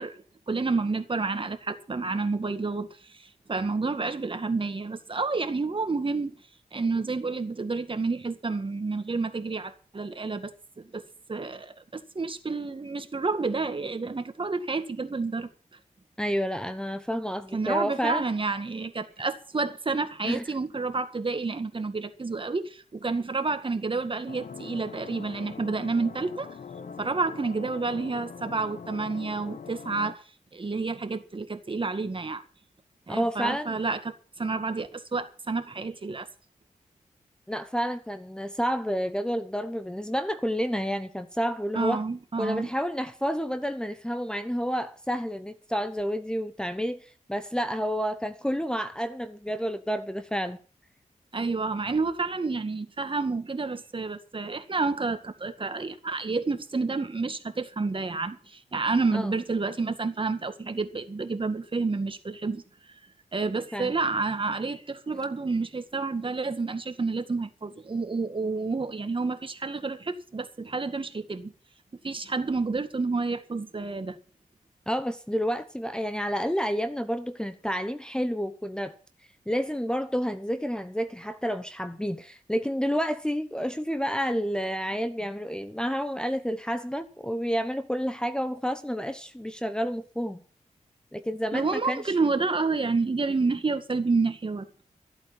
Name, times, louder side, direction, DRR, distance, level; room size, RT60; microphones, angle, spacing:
voice 1, 0.0-6.3 6.7-10.5 10.8-11.0 11.3-15.5 17.5-26.6 27.0-30.2 30.5-32.4 33.1-36.3 41.7-42.7 51.3-62.6 63.3-71.5 72.0-74.2 91.5-94.7, right 3 dB, 40° right, 1.9 m, -29 dB
voice 2, 16.2-18.2 20.2-20.4 33.1-33.8 37.5-42.0 42.4-50.6 59.1-59.3 63.7-63.9 74.9-78.9 79.5-90.4 91.1-92.1, equal, 5° left, 1.0 m, -30 dB
sound 1, 24.3-30.1, left 5 dB, 75° left, 1.3 m, -42 dB
14.5 x 8.6 x 7.4 m
wide cardioid pair, 80°, 14 cm